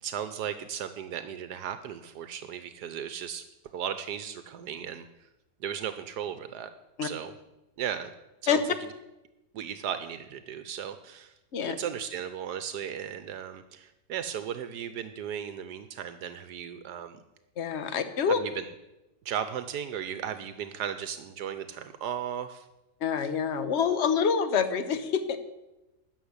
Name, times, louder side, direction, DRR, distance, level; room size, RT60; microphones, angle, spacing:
voice 1, 0.0-3.4 3.7-5.1 5.6-6.7 7.0-7.3 7.8-8.1 8.4-8.6 9.5-11.3 11.6-17.2 18.3-18.7 19.2-22.7 23.2-23.3, right 9 dB, 80° right, 10 dB, 1.3 m, -36 dB
voice 2, 17.6-18.4 23.0-25.4, left 7 dB, 45° left, 10 dB, 1.2 m, -26 dB
13.5 x 6.4 x 9.6 m, 0.97 s
omnidirectional pair, 1.8 m